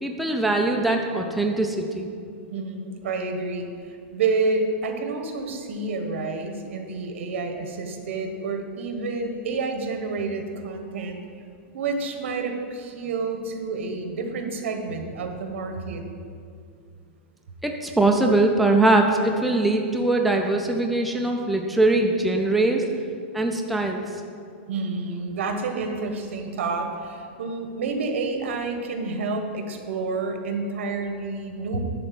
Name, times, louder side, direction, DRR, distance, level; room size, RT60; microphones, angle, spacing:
voice 1, 0.0-2.1 17.6-22.8 23.3-24.2, right 2 dB, ahead, 1 dB, 0.5 m, -22 dB
voice 2, 2.5-11.2 11.7-16.0 24.7-31.8, right 3 dB, 75° right, 5 dB, 1.4 m, -29 dB
10.5 x 4.3 x 7.6 m, 2.3 s
supercardioid pair, 165°, 7 cm